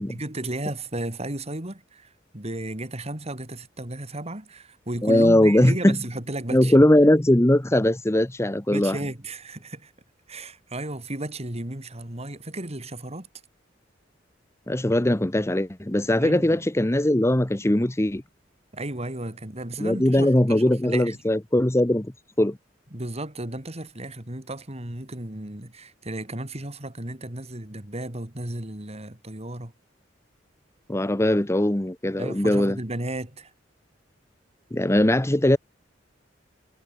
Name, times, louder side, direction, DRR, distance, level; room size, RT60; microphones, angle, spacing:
voice 1, 0.0-6.7 8.7-9.9 10.3-13.3 16.2-16.6 18.7-21.2 22.9-29.7 32.2-33.5, right 1 dB, 35° right, 3.3 m, -34 dB
voice 2, 5.0-6.0 6.5-9.0 14.7-18.2 19.8-22.1 22.4-22.6 30.9-32.8 34.7-35.6, left 1 dB, 15° left, 0.9 m, -20 dB
head